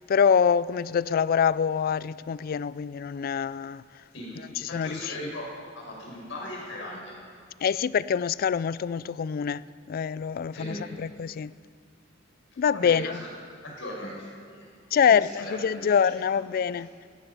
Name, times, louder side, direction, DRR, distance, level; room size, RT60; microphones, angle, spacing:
voice 1, 0.0-3.8 4.6-5.1 7.6-11.5 12.6-13.2 14.9-16.9, left 7 dB, 50° left, 0.3 m, -25 dB
voice 2, 4.1-5.5 5.7-7.1 10.5-10.8 12.7-13.2 13.6-14.7 15.0-16.4 16.7-16.8, left 1 dB, 80° left, 5.5 m, -38 dB
16.5 x 14.5 x 5.6 m
head